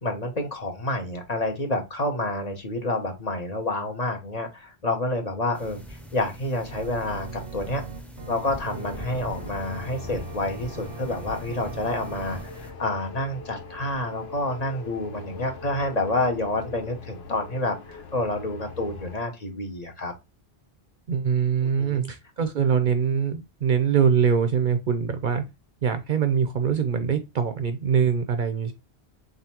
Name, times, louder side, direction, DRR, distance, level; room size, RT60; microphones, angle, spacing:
voice 1, 0.0-7.8 8.3-20.1 21.8-22.1, left 2 dB, 40° left, 1.0 m, -28 dB
sound 1, 5.5-12.7, right 1 dB, ahead, 0.5 m, -43 dB
Organ, 6.7-12.5, right 4 dB, 85° right, 0.9 m, -40 dB
sound 2, 8.6-19.2, left 5 dB, 75° left, 0.9 m, -42 dB
voice 2, 21.1-25.4 25.8-28.7, right 6 dB, 60° right, 0.6 m, -23 dB
3.7 x 3.4 x 2.8 m
omnidirectional pair, 1.1 m